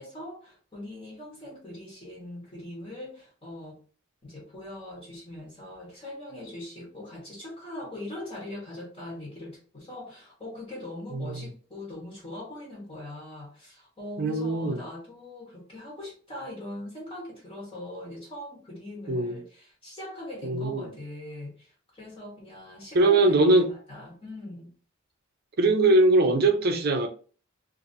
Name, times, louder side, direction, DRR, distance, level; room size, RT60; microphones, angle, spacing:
voice 1, 0.0-3.8 4.2-24.7, left 1 dB, 30° left, 1.1 m, -41 dB
voice 2, 11.1-11.4 14.2-14.8 19.1-19.4 20.4-20.9 22.9-23.7 25.6-27.1, right 2 dB, 50° right, 0.6 m, -21 dB
2.7 x 2.6 x 2.6 m
head